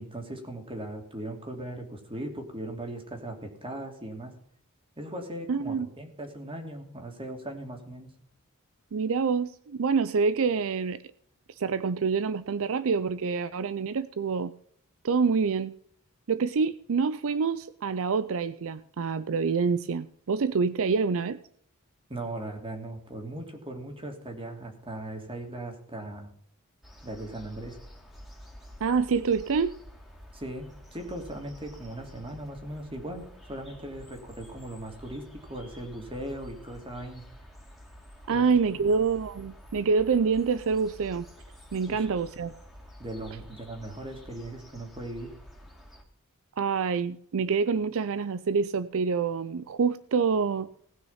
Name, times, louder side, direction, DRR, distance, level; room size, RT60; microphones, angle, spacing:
voice 1, 0.0-4.3 5.0-8.1 22.1-26.3 27.0-27.8 30.3-37.2 38.3-38.4 38.7-38.9 41.9-42.0 43.0-45.3, right 1 dB, 25° right, 2.9 m, -38 dB
voice 2, 5.5-5.9 8.9-11.0 11.5-14.5 15.0-15.7 16.3-21.4 28.8-29.8 38.3-41.3 41.7-42.5 46.6-50.7, right 5 dB, 65° right, 0.5 m, -26 dB
sound 1, 26.8-46.0, equal, ahead, 2.7 m, -49 dB
19.0 x 6.4 x 5.7 m
head